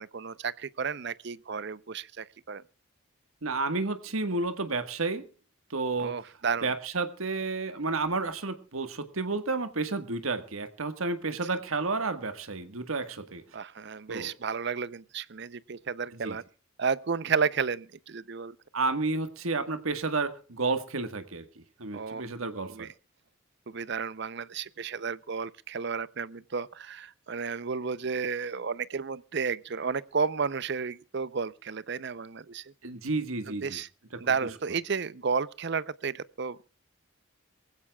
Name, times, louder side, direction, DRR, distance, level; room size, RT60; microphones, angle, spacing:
voice 1, 0.0-2.6 6.0-6.7 13.5-16.4 16.8-18.6 21.9-22.2 22.6-22.9 23.7-32.7 33.5-33.9 34.2-36.7, right 5 dB, 55° right, 0.6 m, -32 dB
voice 2, 3.4-5.2 5.7-6.2 6.6-13.4 14.1-14.3 16.1-16.4 18.7-21.4 21.8-22.9 32.8-33.8, right 3 dB, 90° right, 1.6 m, -31 dB
23.5 x 16.0 x 2.3 m
head